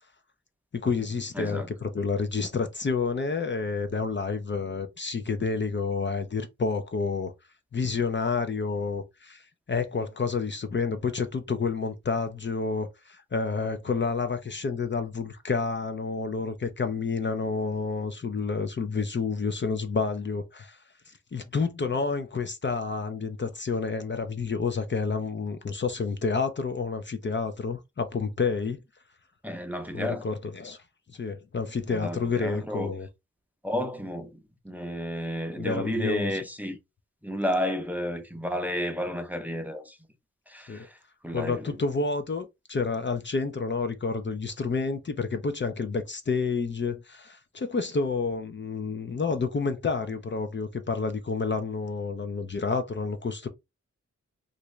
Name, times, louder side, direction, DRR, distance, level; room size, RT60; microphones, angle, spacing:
voice 1, 0.7-7.3 7.7-20.8 21.1-28.8 29.9-30.8 31.1-33.1 35.6-36.4 40.7-40.9 41.3-53.5, left 4 dB, 40° left, 0.5 m, -29 dB
voice 2, 1.4-1.7 29.4-30.2 31.9-32.9 33.6-34.3 34.6-36.8 37.2-40.0 40.5-41.0 41.2-41.8, equal, 5° right, 0.6 m, -31 dB
2.9 x 2.6 x 3.1 m
wide cardioid pair, 80°, 29 cm